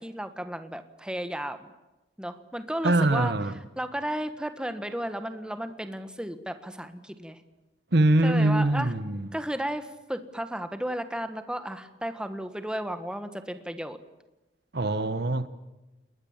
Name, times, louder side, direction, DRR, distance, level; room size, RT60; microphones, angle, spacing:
voice 1, 0.0-1.7 2.2-3.3 3.8-7.4 8.2-8.9 9.3-14.0, right 1 dB, 5° right, 1.4 m, -34 dB
voice 2, 2.8-3.6 7.9-9.3 14.7-15.5, right 2 dB, 60° right, 1.3 m, -23 dB
30.0 x 21.0 x 7.4 m
head